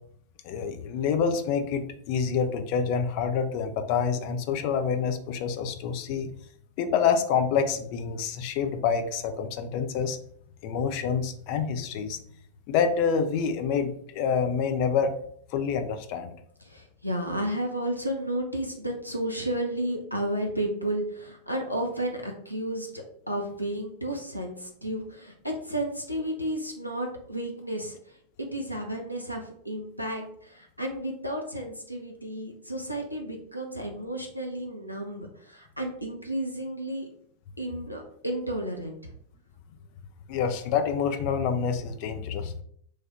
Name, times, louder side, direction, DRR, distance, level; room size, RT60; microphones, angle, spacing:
voice 1, 0.4-6.3 6.8-10.2 10.6-12.2 12.7-15.1 15.5-16.4 40.3-42.6, left 6 dB, 45° left, 7 dB, 0.4 m, -27 dB
voice 2, 16.6-28.0 28.4-37.1 37.6-39.1, right 1 dB, 90° left, 1 dB, 0.6 m, -32 dB
3.2 x 2.3 x 4.0 m, 0.66 s
figure-of-eight pair, 90°, 0 cm